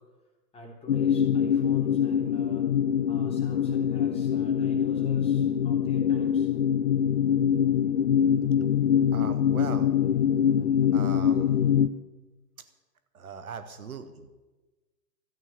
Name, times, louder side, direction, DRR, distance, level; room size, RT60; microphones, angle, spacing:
voice 1, 0.5-2.6 3.0-6.5, left 1 dB, 10° left, -1 dB, 3.2 m, -44 dB
sound 1, 0.9-11.9, left 8 dB, 45° left, 0.6 m, -24 dB
voice 2, 9.1-9.9 10.9-11.7 13.1-14.3, right 6 dB, 60° right, 9 dB, 1.2 m, -39 dB
13.0 x 9.3 x 8.6 m, 1.2 s
figure-of-eight pair, 115°, 48 cm